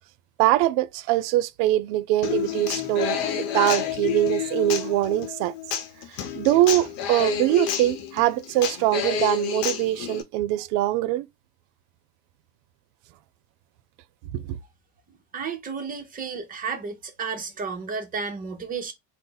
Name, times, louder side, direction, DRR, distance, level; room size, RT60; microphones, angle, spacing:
voice 1, 0.4-5.5 6.3-11.3 14.3-14.6, right 15 dB, 80° right, 0.6 m, -23 dB
Human voice / Acoustic guitar, 2.2-10.2, left 8 dB, 85° left, 0.8 m, -29 dB
voice 2, 15.3-18.9, right 5 dB, 20° right, 0.7 m, -32 dB
4.1 x 2.1 x 3.9 m
cardioid pair, 165°, 39 cm